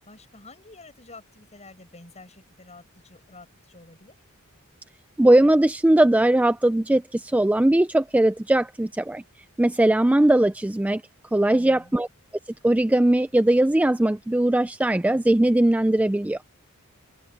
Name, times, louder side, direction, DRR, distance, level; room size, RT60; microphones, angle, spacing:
voice 1, 0.0-4.2 11.5-11.9, left 2 dB, 30° left, 8.0 m, -48 dB
voice 2, 5.2-9.2 9.6-11.0 11.3-12.1 12.6-16.5, right 1 dB, 5° right, 0.3 m, -20 dB
open air
head